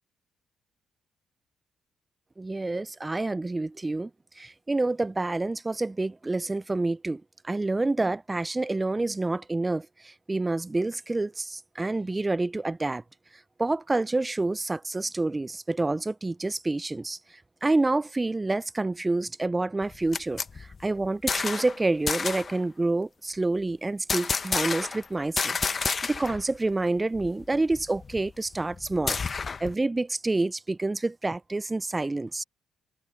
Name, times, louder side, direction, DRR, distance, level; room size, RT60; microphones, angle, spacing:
voice 1, 2.4-4.1 4.4-13.0 13.6-17.2 17.6-32.4, right 2 dB, 20° right, 0.3 m, -28 dB
sound 1, 19.8-21.8 22.1-22.6 24.1-25.1 25.4-26.4 26.7-26.8 27.1-29.7, left 5 dB, 35° left, 0.9 m, -30 dB
cardioid pair, 90°, 0 cm